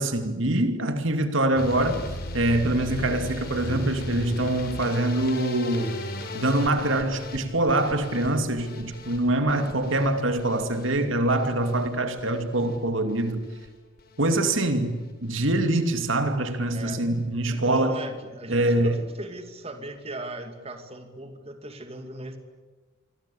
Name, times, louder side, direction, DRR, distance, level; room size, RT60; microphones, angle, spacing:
voice 1, 0.0-2.0 2.3-6.0 6.3-13.4 14.2-18.0 18.5-19.0, right 1 dB, 70° right, 2.6 m, -24 dB
sound 1, 1.6-13.7 14.0-14.6 14.9-15.5 15.8-16.0 16.4-16.5 16.7-16.8, left 1 dB, 50° left, 4.4 m, -38 dB
voice 2, 16.7-17.1 17.5-22.4, right 1 dB, 30° right, 2.6 m, -38 dB
28.0 x 24.0 x 8.6 m
head